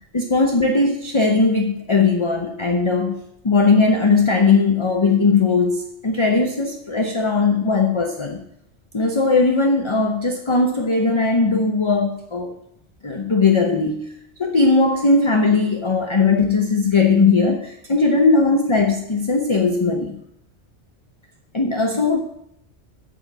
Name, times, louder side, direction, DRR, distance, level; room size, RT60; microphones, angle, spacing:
voice 1, 0.1-3.2 3.4-8.4 8.9-12.5 13.0-14.1 14.4-20.2 21.5-22.2, left 3 dB, 30° left, 4 dB, 0.7 m, -18 dB
8.6 x 5.6 x 7.3 m, 0.73 s
omnidirectional pair, 1.2 m